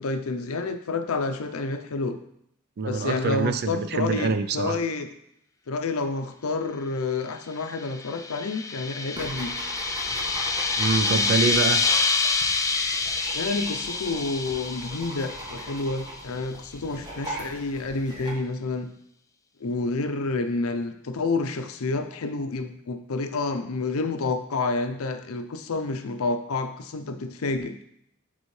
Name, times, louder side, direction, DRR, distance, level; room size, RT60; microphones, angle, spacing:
voice 1, 0.0-2.2 2.9-5.1 5.7-9.8 13.3-18.9 19.6-27.8, left 3 dB, 80° left, 8 dB, 0.6 m, -29 dB
voice 2, 2.8-4.8 10.8-11.8, right 4 dB, 50° right, 11 dB, 0.4 m, -25 dB
sound 1, 7.7-16.1, left 4 dB, 15° left, 0.3 m, -27 dB
sound 2, 9.1-18.3, right 1 dB, 20° right, 1.3 m, -39 dB
9.4 x 3.7 x 3.2 m, 0.74 s
head